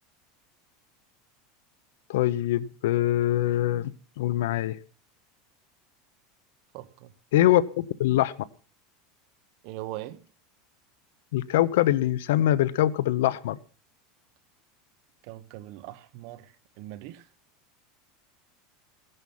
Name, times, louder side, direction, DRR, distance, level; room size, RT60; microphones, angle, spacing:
voice 1, 2.1-3.9 4.2-4.8 7.3-8.3 11.3-13.6, left 13 dB, 85° left, 0.8 m, -23 dB
voice 2, 6.7-7.1 9.6-10.3 15.2-17.3, right 15 dB, 55° right, 1.2 m, -41 dB
17.0 x 11.0 x 5.5 m
supercardioid pair, 155°, 0 cm